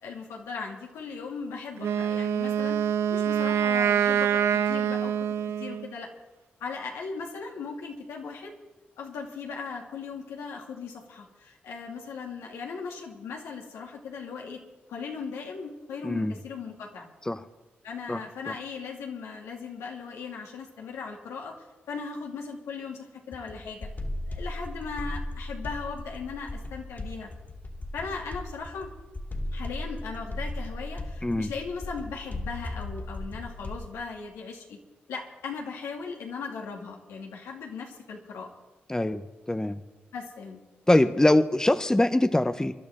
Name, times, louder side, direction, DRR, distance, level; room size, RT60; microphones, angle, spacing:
voice 1, 0.0-2.8 3.1-5.1 5.6-6.1 6.6-8.5 9.0-14.6 14.9-17.1 17.8-23.9 24.3-27.3 27.9-28.9 29.5-34.8 35.1-38.5 40.1-40.6, left 5 dB, 85° left, 0 dB, 2.6 m, -38 dB
Wind instrument woodwind instrument, 1.8-5.9, right 8 dB, 75° right, 0.5 m, -25 dB
sound 1, 23.3-34.0, left 1 dB, 45° left, 2.9 m, -37 dB
voice 2, 38.9-39.2 39.5-39.8 40.9-42.7, left 1 dB, 15° left, 10 dB, 0.9 m, -23 dB
26.0 x 11.5 x 3.7 m, 1.1 s
supercardioid pair, 45°, 5 cm